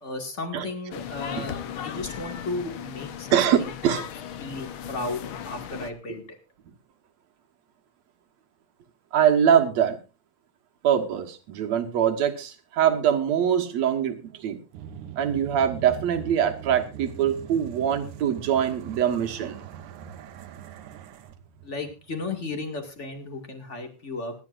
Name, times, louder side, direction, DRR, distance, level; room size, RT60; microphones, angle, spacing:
voice 1, 0.0-3.7 4.4-6.4 21.6-24.3, left 3 dB, 25° left, 4 dB, 2.0 m, -34 dB
sound 1, 0.9-5.9, left 9 dB, 70° left, 1.3 m, -37 dB
voice 2, 3.3-4.1 9.1-10.0 10.8-14.6 15.2-19.6, right 9 dB, 65° right, 5 dB, 2.5 m, -23 dB
sound 2, 14.7-22.9, right 7 dB, 80° right, 2.5 m, -42 dB
25.0 x 10.5 x 2.5 m, 0.31 s
omnidirectional pair, 3.5 m